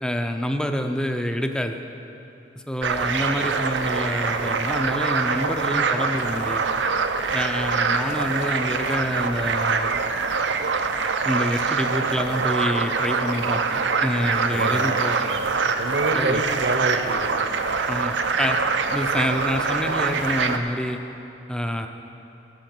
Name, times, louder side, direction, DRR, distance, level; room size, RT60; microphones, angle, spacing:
voice 1, 0.0-1.8 2.7-6.6 7.3-9.9 11.2-15.3 16.1-16.4 17.9-18.6 18.9-21.0 21.5-21.9, equal, 5° left, 5 dB, 0.5 m, -27 dB
sound 1, 2.8-20.6, right 4 dB, 85° right, 0.7 m, -24 dB
voice 2, 14.5-15.0 15.8-17.3, right 2 dB, 65° right, 6 dB, 0.9 m, -26 dB
18.0 x 6.9 x 6.0 m, 2.9 s
head